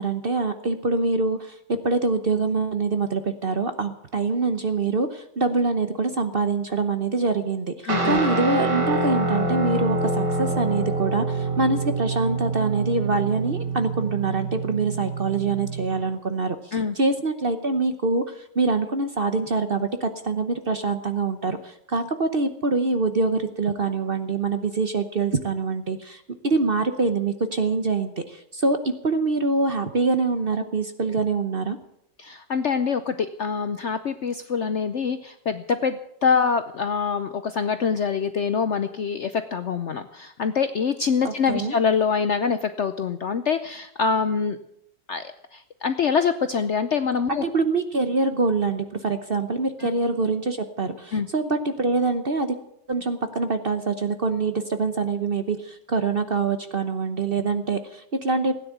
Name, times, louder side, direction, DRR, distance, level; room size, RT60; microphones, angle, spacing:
voice 1, 0.0-1.6 1.8-31.8 41.2-41.7 47.3-52.5 52.9-58.5, right 3 dB, 40° right, 9 dB, 0.9 m, -25 dB
voice 2, 7.8-8.2 16.7-16.9 32.2-44.6 45.1-45.2 45.5-47.4 51.1-51.3, left 6 dB, 60° left, 10 dB, 0.8 m, -25 dB
Guitar, 7.9-16.0, right 2 dB, 75° right, 3.2 m, -26 dB
16.0 x 10.0 x 8.0 m, 0.79 s
omnidirectional pair, 1.9 m